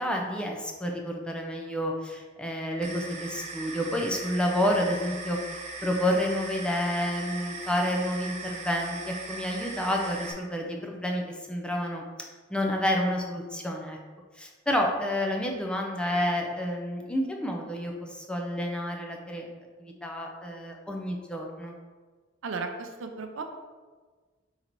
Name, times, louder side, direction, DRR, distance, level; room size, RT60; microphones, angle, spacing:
voice 1, 0.0-5.4 5.8-11.2 11.5-14.0 14.4-19.5 19.8-21.7, equal, 5° left, 1 dB, 0.5 m, -29 dB
sound 1, 2.8-10.3, right 3 dB, 35° right, 0.6 m, -39 dB
voice 2, 22.4-23.4, right 4 dB, 80° right, 5 dB, 0.5 m, -35 dB
3.9 x 2.9 x 4.4 m, 1.4 s
head